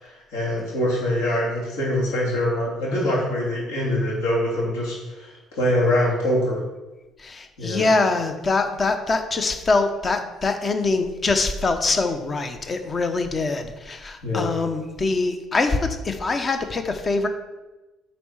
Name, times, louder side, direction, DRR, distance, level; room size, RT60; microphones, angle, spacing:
voice 1, 0.0-6.6 7.6-7.9 14.2-14.5, left 1 dB, 65° left, -5 dB, 3.0 m, -24 dB
voice 2, 7.2-17.3, left 3 dB, 30° left, 7 dB, 1.0 m, -24 dB
9.0 x 4.4 x 5.7 m, 1.1 s
figure-of-eight pair, 50°, 0 cm